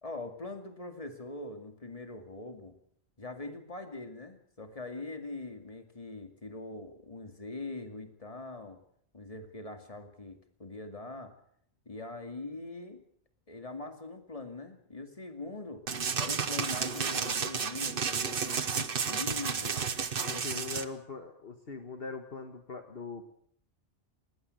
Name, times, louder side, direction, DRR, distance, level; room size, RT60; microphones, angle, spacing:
voice 1, 0.0-2.7 3.2-8.8 9.1-11.3 11.9-13.0 13.5-15.8 16.2-19.8 20.3-20.6, left 2 dB, 30° left, 6 dB, 2.4 m, -42 dB
sound 1, 15.9-20.9, right 6 dB, 55° right, 1.2 m, -32 dB
voice 2, 20.2-23.2, left 4 dB, 55° left, 6 dB, 1.7 m, -41 dB
19.5 x 19.0 x 7.8 m, 0.66 s
omnidirectional pair, 1.2 m